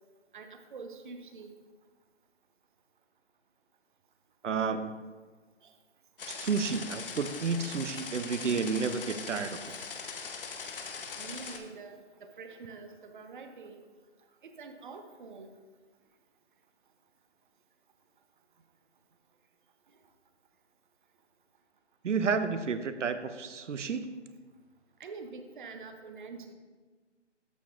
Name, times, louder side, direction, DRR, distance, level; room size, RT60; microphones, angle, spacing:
voice 1, 0.3-1.6 5.6-5.7 7.1-7.2 9.7-9.8 11.2-13.8 14.4-15.5 25.0-26.5, right 4 dB, 45° right, 7 dB, 0.6 m, -46 dB
voice 2, 4.4-5.0 6.3-9.6 22.0-24.2, right 5 dB, 85° right, 10 dB, 0.6 m, -31 dB
sound 1, 6.2-11.6, left 5 dB, 50° left, 0.8 m, -41 dB
13.5 x 4.8 x 2.3 m, 1.4 s
figure-of-eight pair, 155°, 36 cm